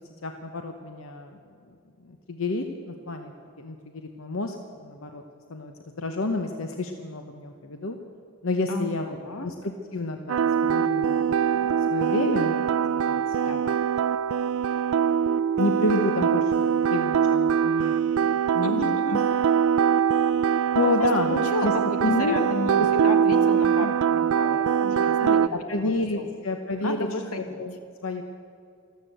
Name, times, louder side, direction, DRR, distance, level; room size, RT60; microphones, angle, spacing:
voice 1, 0.2-1.4 2.0-3.3 3.6-5.2 5.5-8.0 8.4-9.2 9.4-9.5 9.9-12.6 13.1-13.7 15.6-19.2 20.7-21.7 22.0-22.4 22.8-22.9 23.3-23.4 23.8-23.9 25.2-27.1 27.6-27.7 28.0-28.2, left 2 dB, 65° left, 5 dB, 0.9 m, -29 dB
voice 2, 8.7-9.5 13.4-13.8 18.6-19.2 20.8-26.2 26.8-27.6, left 2 dB, 85° left, 6 dB, 1.7 m, -33 dB
sound 1, 10.3-25.5, right 7 dB, 70° right, 0.3 m, -23 dB
14.0 x 13.0 x 7.9 m, 2.3 s
head